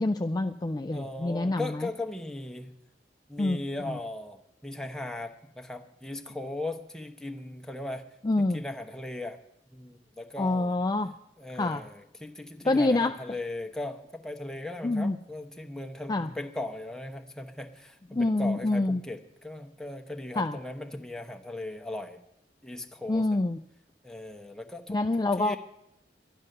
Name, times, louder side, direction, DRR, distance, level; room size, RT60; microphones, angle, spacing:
voice 1, 0.0-1.9 3.4-3.6 3.9-4.0 8.2-8.6 10.4-11.1 11.5-11.8 12.6-13.1 14.8-15.2 16.1-16.3 18.1-19.0 20.4-20.6 23.1-23.6 24.9-25.6, left 2 dB, 20° left, 7 dB, 0.4 m, -26 dB
voice 2, 0.9-2.8 3.3-8.0 8.4-9.4 9.7-10.8 11.4-22.2 22.6-23.4 24.0-25.0 25.4-25.6, left 2 dB, 5° left, 4 dB, 1.0 m, -38 dB
12.0 x 11.0 x 6.7 m, 0.80 s
head